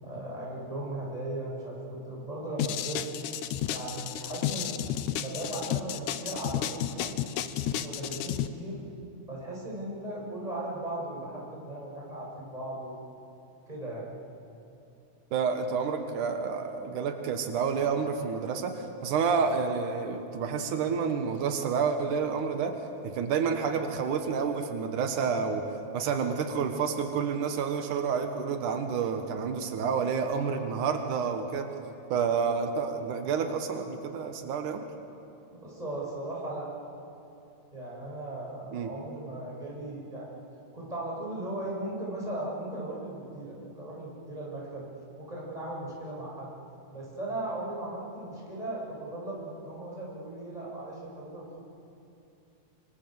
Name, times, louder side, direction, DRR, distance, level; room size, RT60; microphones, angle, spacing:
voice 1, 0.0-3.0 3.7-4.8 5.1-7.1 7.5-8.8 9.3-13.0 13.7-14.0 25.4-25.5 35.5-36.7 37.7-40.3 40.7-44.8 45.2-46.5 46.9-51.6, right 1 dB, 10° right, -5 dB, 7.3 m, -37 dB
sound 1, 2.6-8.5, left 11 dB, 80° left, 2.3 m, -32 dB
voice 2, 15.3-25.7 25.9-31.7 32.1-34.9 38.7-38.9, right 6 dB, 90° right, 5 dB, 3.0 m, -29 dB
27.0 x 26.0 x 8.0 m, 2.8 s
omnidirectional pair, 3.5 m